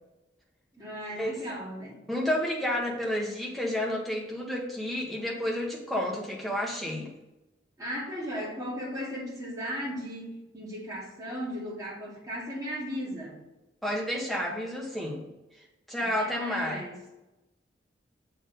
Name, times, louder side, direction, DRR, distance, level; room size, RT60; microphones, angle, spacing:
voice 1, 0.7-2.0 7.8-13.4 16.2-17.0, equal, 20° right, -6 dB, 2.5 m, -36 dB
voice 2, 2.1-7.1 13.8-15.2 15.9-16.8, left 1 dB, ahead, -3 dB, 1.4 m, -30 dB
7.2 x 4.6 x 5.2 m, 0.98 s
head